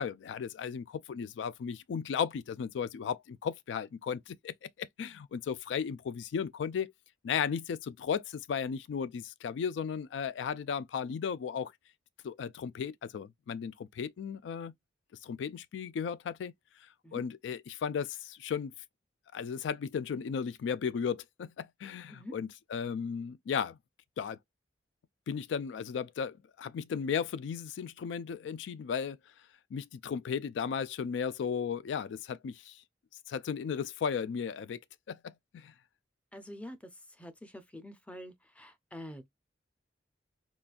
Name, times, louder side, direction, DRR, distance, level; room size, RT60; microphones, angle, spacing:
voice 1, 0.0-6.9 7.2-11.7 12.2-14.7 15.2-16.5 17.1-18.7 19.3-23.8 24.2-24.4 25.3-29.2 29.7-32.8 33.3-34.8 35.1-35.7, left 7 dB, 80° left, 0.3 m, -35 dB
voice 2, 36.3-36.8 37.2-39.3, left 1 dB, 5° left, 0.5 m, -46 dB
3.8 x 2.3 x 2.4 m
head